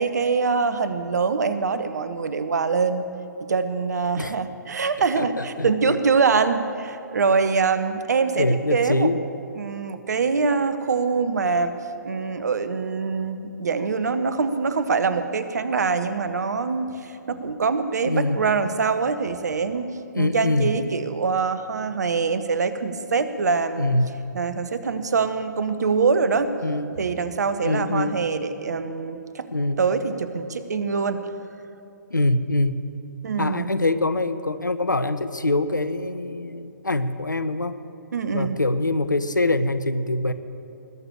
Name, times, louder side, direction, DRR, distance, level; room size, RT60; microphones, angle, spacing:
voice 1, 0.0-3.1 3.5-9.1 9.6-11.7 12.0-23.9 24.3-26.5 27.0-29.5 29.8-31.2 33.2-33.7 38.1-38.6, right 5 dB, 65° right, 11 dB, 0.9 m, -24 dB
voice 2, 5.2-6.0 8.4-9.2 18.1-18.4 20.1-20.7 23.8-24.1 26.6-27.0 27.6-28.2 29.5-29.8 32.1-32.8 33.4-37.8 38.3-40.3, left 2 dB, 85° left, 12 dB, 0.8 m, -24 dB
20.5 x 6.9 x 7.5 m, 2.9 s
figure-of-eight pair, 125°, 10 cm